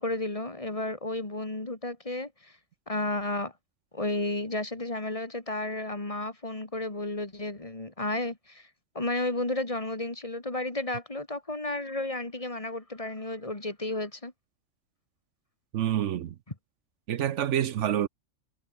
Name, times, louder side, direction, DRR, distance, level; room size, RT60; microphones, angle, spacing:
voice 1, 0.0-2.5 2.9-3.5 3.9-8.7 8.9-14.3, left 2 dB, 25° left, 2.2 m, -32 dB
voice 2, 15.7-16.4 17.1-18.1, right 10 dB, 70° right, 1.0 m, -27 dB
omnidirectional pair, 1.3 m